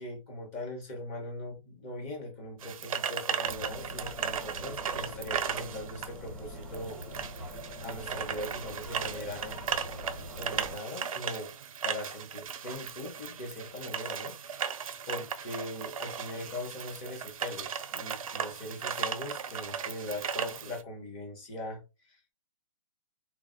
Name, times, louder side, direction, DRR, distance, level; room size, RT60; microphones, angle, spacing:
voice 1, 0.0-7.5 7.8-9.6 10.3-11.5 11.8-22.2, left 1 dB, 25° left, 0.9 m, -41 dB
sound 1, 2.6-20.8, right 7 dB, 80° right, 0.4 m, -36 dB
sound 2, 3.4-10.8, equal, 5° right, 0.6 m, -43 dB
2.2 x 2.1 x 3.7 m
hypercardioid pair, 160°, 18 cm